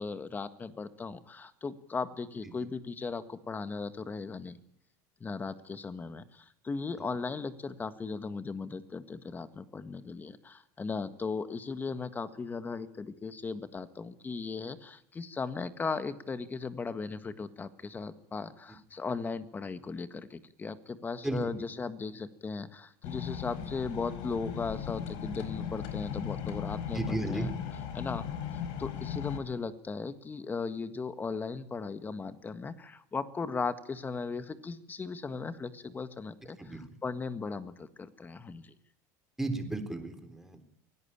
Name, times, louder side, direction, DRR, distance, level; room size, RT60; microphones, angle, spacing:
voice 1, 0.0-4.6 5.2-27.5 27.9-28.2 28.5-36.6 37.0-38.7, left 4 dB, 20° left, 11 dB, 1.7 m, -37 dB
voice 2, 21.2-21.7 26.9-27.5 36.6-36.9 39.4-40.6, right 2 dB, 5° right, 6 dB, 3.8 m, -34 dB
sound 1, 23.0-29.4, left 8 dB, 65° left, 4.8 m, -37 dB
24.0 x 17.5 x 8.9 m, 0.74 s
supercardioid pair, 125°, 9 cm